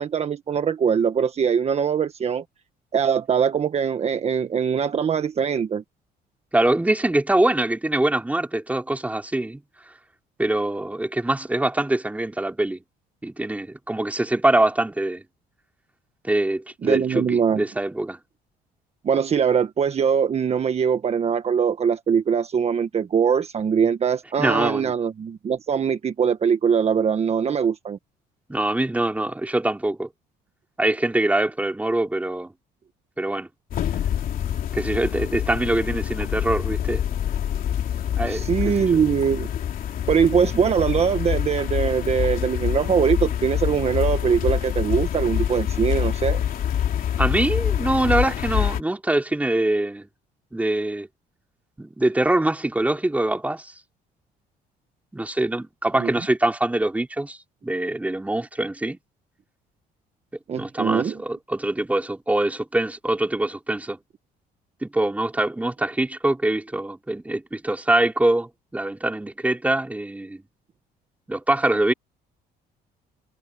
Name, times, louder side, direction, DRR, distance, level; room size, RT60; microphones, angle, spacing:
voice 1, 0.0-2.4 2.9-5.8 16.8-17.6 19.0-28.0 38.3-39.5 40.1-46.4 56.0-56.1 60.5-61.2, right 7 dB, 40° right, 1.4 m, -22 dB
voice 2, 6.5-9.6 10.4-12.8 13.2-15.2 16.2-18.2 24.4-24.9 28.5-30.1 30.8-32.5 33.2-33.5 34.7-37.0 38.1-38.8 47.2-50.1 50.5-51.1 51.8-53.7 55.1-57.4 57.6-59.0 60.5-64.0 64.8-70.4 71.3-71.9, right 1 dB, 10° right, 3.1 m, -23 dB
after rain wet road car passby urban ext night, 33.7-48.8, left 10 dB, 55° left, 3.2 m, -26 dB
cardioid pair, 110°, 17 cm